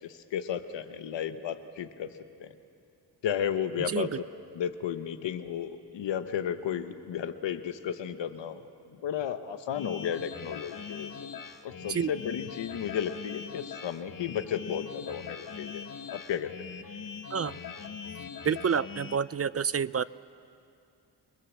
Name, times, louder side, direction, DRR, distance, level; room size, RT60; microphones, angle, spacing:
voice 1, 0.0-2.1 2.4-2.5 3.2-4.1 4.5-8.6 9.0-11.1 11.6-16.5, left 9 dB, 90° left, 9 dB, 1.1 m, -33 dB
voice 2, 3.9-4.2 11.9-12.1 17.3-17.6 18.4-20.0, right 7 dB, 35° right, 18 dB, 0.5 m, -28 dB
sound 1, 9.7-19.2, left 6 dB, 50° left, 1.4 m, -42 dB
29.0 x 20.0 x 7.3 m, 2.6 s
cardioid pair, 60°, 42 cm